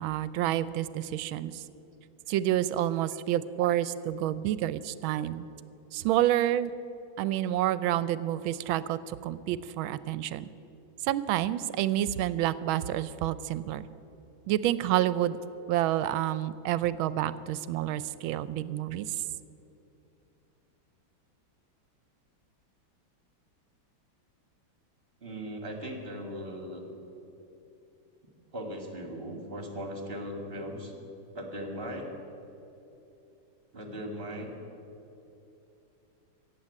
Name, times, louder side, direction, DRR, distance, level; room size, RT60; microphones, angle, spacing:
voice 1, 0.0-1.6 2.3-5.5 5.9-6.7 7.2-10.5 11.0-13.8 14.5-15.4 15.7-19.2, right 12 dB, 85° right, 16 dB, 1.4 m, -29 dB
voice 2, 25.2-26.9 28.5-30.9 31.3-32.1 33.7-34.5, equal, 30° right, 3 dB, 2.1 m, -38 dB
15.5 x 7.9 x 9.7 m, 2.9 s
omnidirectional pair, 2.2 m